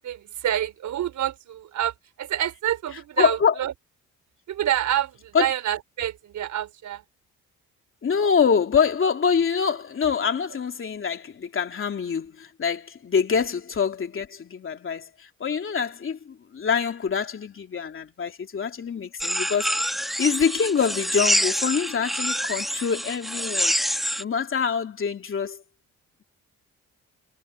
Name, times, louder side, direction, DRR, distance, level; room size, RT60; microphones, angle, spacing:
voice 1, 0.0-3.7 4.5-7.0, right 11 dB, 70° right, 4.7 m, -27 dB
voice 2, 3.2-3.5 5.3-5.5 8.0-23.7 24.2-25.6, left 6 dB, 45° left, 3.0 m, -25 dB
sound 1, 19.2-24.2, equal, ahead, 1.6 m, -26 dB
cardioid pair, 90°, 30 cm